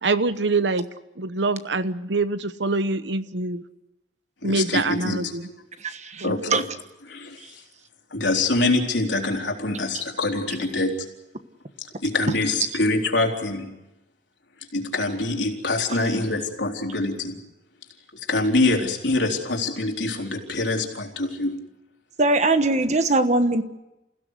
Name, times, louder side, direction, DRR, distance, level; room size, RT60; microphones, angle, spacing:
voice 1, 0.0-0.9 1.2-3.6 4.4-5.5 6.2-6.6, right 3 dB, 80° right, 13 dB, 1.0 m, -25 dB
voice 2, 4.4-5.3 6.2-6.5 7.1-7.4 8.1-10.9 12.0-13.7 14.7-17.4 18.3-21.5, left 2 dB, 80° left, 1 dB, 3.8 m, -24 dB
voice 3, 5.8-6.6 12.3-12.4 22.2-23.6, right 2 dB, 40° right, 10 dB, 1.3 m, -21 dB
28.5 x 16.5 x 8.2 m, 0.96 s
head